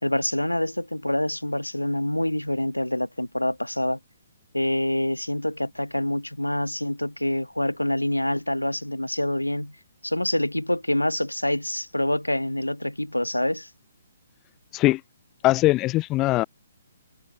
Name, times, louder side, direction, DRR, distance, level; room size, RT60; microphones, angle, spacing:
voice 1, 0.0-4.0 4.5-9.8 10.0-13.7, left 1 dB, 90° left, 2.1 m, -26 dB
voice 2, 15.4-16.4, left 18 dB, 20° left, 1.3 m, -21 dB
figure-of-eight pair, 130°, 0 cm